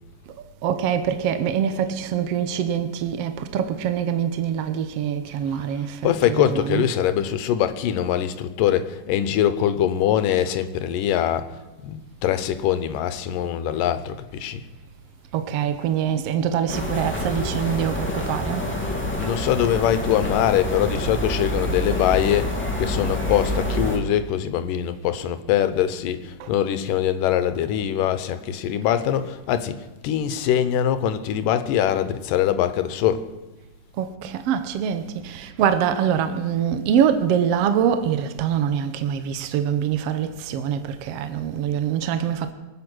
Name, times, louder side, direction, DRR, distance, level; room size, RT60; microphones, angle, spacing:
voice 1, 0.6-6.8 15.3-18.7 26.4-26.5 34.0-42.5, right 8 dB, 75° right, 1.4 m, -24 dB
voice 2, 6.0-14.7 18.9-33.3, left 10 dB, 85° left, 2.5 m, -23 dB
sound 1, 16.7-24.0, left 1 dB, 5° left, 1.8 m, -27 dB
24.0 x 8.8 x 6.2 m
omnidirectional pair, 3.8 m